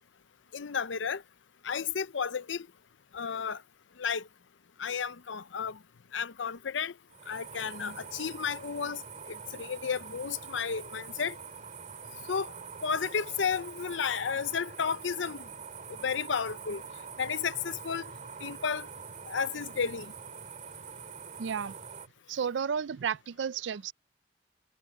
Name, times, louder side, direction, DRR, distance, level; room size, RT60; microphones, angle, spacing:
voice 1, 0.5-1.2 1.6-2.7 3.1-3.6 4.0-4.3 4.8-5.8 6.1-6.9 7.3-11.4 12.3-12.5 12.8-15.5 15.9-16.8 17.2-18.1 18.4-18.9 19.2-20.1, left 6 dB, 80° left, 0.6 m, -32 dB
sound 1, 7.1-22.1, right 6 dB, 40° right, 2.4 m, -45 dB
voice 2, 21.4-21.8 22.3-23.9, right 7 dB, 75° right, 0.4 m, -32 dB
head